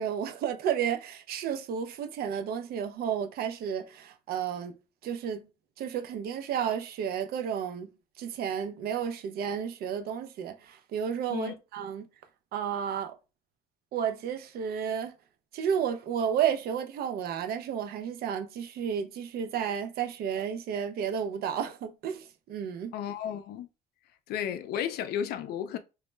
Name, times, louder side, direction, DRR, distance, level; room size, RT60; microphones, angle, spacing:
voice 1, 0.0-4.7 5.0-5.5 5.8-12.1 12.5-13.1 13.9-15.1 15.5-22.9, right 8 dB, 65° right, 0.5 m, -32 dB
voice 2, 22.9-23.7 24.3-25.8, left 9 dB, 70° left, 0.4 m, -33 dB
2.1 x 2.0 x 3.1 m
cardioid pair, 110°, 17 cm